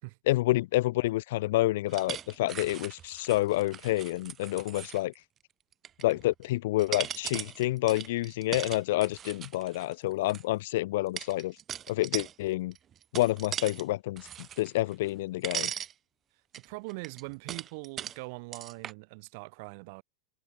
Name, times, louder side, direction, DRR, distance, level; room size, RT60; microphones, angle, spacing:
voice 1, 0.3-5.1 6.0-11.5 11.9-12.7 13.1-14.3 14.6-15.7, left 17 dB, 55° left, 1.2 m, -28 dB
sound 1, 1.9-5.1 5.7-6.4 6.8-10.4 11.2-12.3 12.7-13.8 14.2-15.2 15.4-15.9 16.5-18.2 18.5-18.9, right 9 dB, 25° right, 2.4 m, -39 dB
voice 2, 16.5-20.0, right 29 dB, 45° right, 6.1 m, -42 dB
figure-of-eight pair, 90°, 0 cm